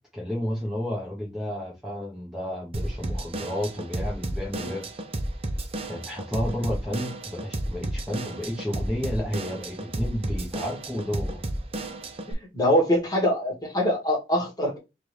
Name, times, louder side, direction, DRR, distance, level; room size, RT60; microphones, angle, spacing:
voice 1, 0.1-4.9 5.9-11.4, left 1 dB, ahead, 0.9 m, -31 dB
Drum kit / Drum, 2.7-12.3, right 1 dB, 35° right, 0.6 m, -32 dB
voice 2, 12.3-14.8, equal, 20° left, 1.4 m, -24 dB
4.7 x 2.4 x 3.2 m
head